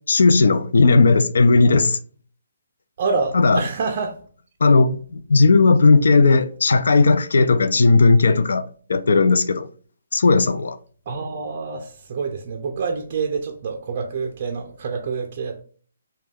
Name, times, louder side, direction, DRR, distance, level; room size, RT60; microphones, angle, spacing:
voice 1, 0.1-2.0 3.3-3.6 4.6-8.6 8.9-9.7 10.1-10.8, left 3 dB, 80° left, 0.4 m, -16 dB
voice 2, 3.0-4.2 11.1-15.6, right 4 dB, 40° right, 0.4 m, -27 dB
3.3 x 2.2 x 2.3 m
hypercardioid pair, 165°, 0 cm